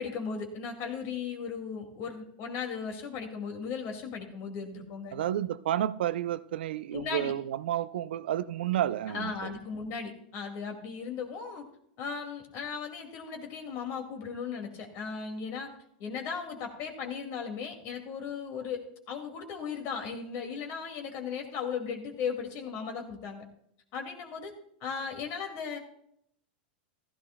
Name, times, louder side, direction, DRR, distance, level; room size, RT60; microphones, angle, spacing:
voice 1, 0.0-5.2 6.9-7.3 9.1-11.7 12.0-15.7 16.0-23.5 23.9-24.5 24.8-25.8, left 6 dB, 50° left, 2.2 m, -37 dB
voice 2, 5.1-9.6, right 11 dB, 75° right, 0.5 m, -31 dB
15.0 x 13.5 x 2.2 m
hypercardioid pair, 120°, 6 cm